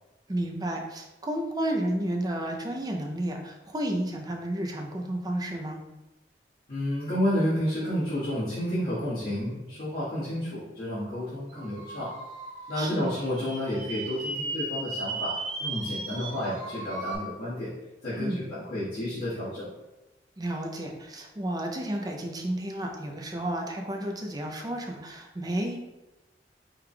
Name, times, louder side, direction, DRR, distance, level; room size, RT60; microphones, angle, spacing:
voice 1, 0.3-5.8 12.7-13.1 18.1-18.4 20.4-25.8, right 1 dB, 20° right, 2 dB, 0.5 m, -32 dB
voice 2, 6.7-12.1 12.7-15.3 15.6-17.7 18.0-19.7, left 1 dB, 55° left, -13 dB, 1.5 m, -30 dB
sound 1, 11.5-17.2, right 2 dB, 70° right, 1.5 m, -36 dB
4.9 x 3.4 x 2.3 m, 1.0 s
head